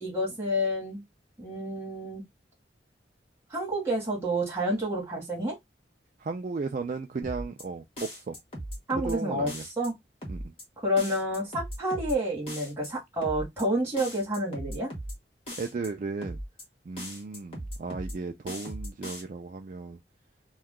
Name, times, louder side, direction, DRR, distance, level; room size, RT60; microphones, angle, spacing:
voice 1, 0.0-1.0 1.4-2.2 3.5-5.6 8.9-10.0 10.8-14.9, equal, 15° right, 1.5 m, -29 dB
voice 2, 6.2-8.4 9.0-9.7 10.3-10.5 15.6-16.4 16.9-20.0, right 4 dB, 45° right, 0.3 m, -35 dB
sound 1, 7.2-7.6 8.0-9.1 9.5-9.9 10.2-10.6 11.0-12.1 12.5-12.9 13.2-13.6 14.0-15.1 15.5-15.9 16.2-16.6 17.0-18.1 18.5-19.2, equal, 35° left, 1.2 m, -38 dB
2.7 x 2.3 x 3.5 m
head